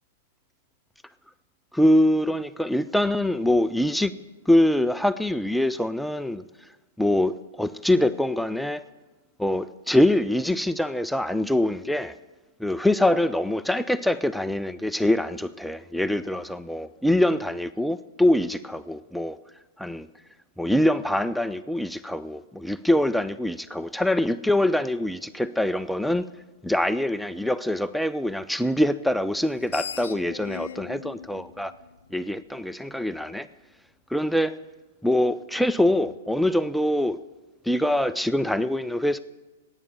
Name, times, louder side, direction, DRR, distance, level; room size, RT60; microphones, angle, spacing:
voice 1, 1.7-4.1 4.5-6.4 7.0-8.8 9.4-12.1 12.6-19.4 19.8-20.1 20.6-26.3 26.6-31.7 32.1-33.5 34.1-34.5 35.0-37.2 37.6-39.2, left 1 dB, ahead, 0.3 m, -24 dB
Screech, 29.4-32.6, left 7 dB, 70° left, 0.6 m, -39 dB
11.0 x 8.9 x 8.5 m
figure-of-eight pair, 105°, 0 cm